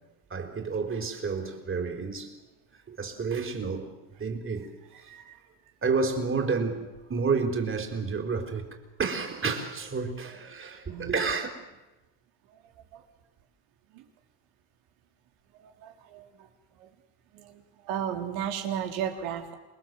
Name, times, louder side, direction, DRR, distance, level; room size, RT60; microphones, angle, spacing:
voice 1, 0.3-2.4 2.9-5.1 5.8-11.5, right 4 dB, 25° right, 4.6 m, -30 dB
voice 2, 15.8-16.2 17.3-17.5 17.9-19.6, right 9 dB, 85° right, 3.9 m, -33 dB
28.0 x 21.5 x 8.0 m
supercardioid pair, 100°, 45 cm